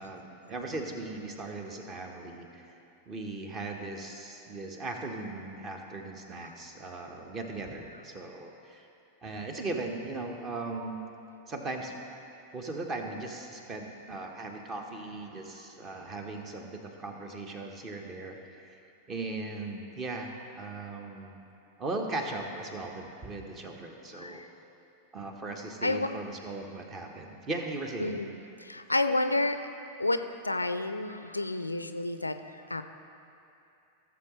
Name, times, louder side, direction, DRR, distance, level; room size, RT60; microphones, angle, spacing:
voice 1, 0.0-2.7 3.1-8.9 9.2-11.0 11.5-12.0 12.5-18.8 19.1-21.4 21.8-24.4 25.1-28.3, right 2 dB, 25° right, 3 dB, 1.1 m, -38 dB
voice 2, 24.1-24.5 25.8-26.1 28.0-29.7 30.0-32.8, left 2 dB, 85° left, 9 dB, 0.4 m, -30 dB
16.5 x 7.1 x 3.2 m, 2.8 s
figure-of-eight pair, 90°, 0 cm